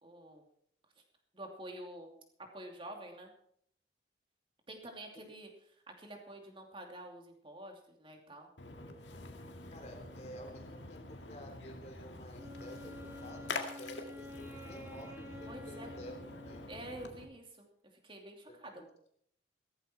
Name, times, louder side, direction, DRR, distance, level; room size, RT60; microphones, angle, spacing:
voice 1, 0.0-0.4 1.0-1.1 1.3-2.1 2.5-3.3 4.7-8.5 15.5-15.9 16.7-17.7 18.0-18.8, right 1 dB, 30° right, 2 dB, 2.8 m, -48 dB
Splash splatter, 8.6-17.2, left 3 dB, 90° left, 1.9 m, -46 dB
voice 2, 9.7-16.1 16.4-16.6 18.5-18.9, equal, 40° left, 3 dB, 3.4 m, -51 dB
Wind instrument woodwind instrument, 12.3-17.2, left 1 dB, 15° right, 2.2 m, -50 dB
16.0 x 14.0 x 4.5 m, 0.66 s
head